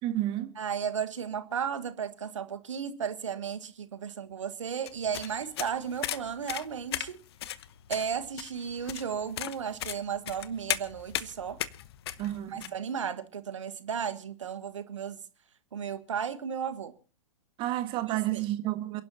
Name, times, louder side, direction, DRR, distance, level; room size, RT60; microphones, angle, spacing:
voice 1, 0.0-0.5 12.2-12.7 17.6-19.0, right 14 dB, 30° right, 1.6 m, -31 dB
voice 2, 0.6-7.2 7.9-11.6 12.5-15.2 15.7-16.9 18.0-18.4, right 7 dB, 65° right, 1.6 m, -34 dB
sound 1, 4.9-12.7, left 12 dB, 50° left, 0.9 m, -36 dB
28.5 x 11.0 x 2.8 m
figure-of-eight pair, 105°, 17 cm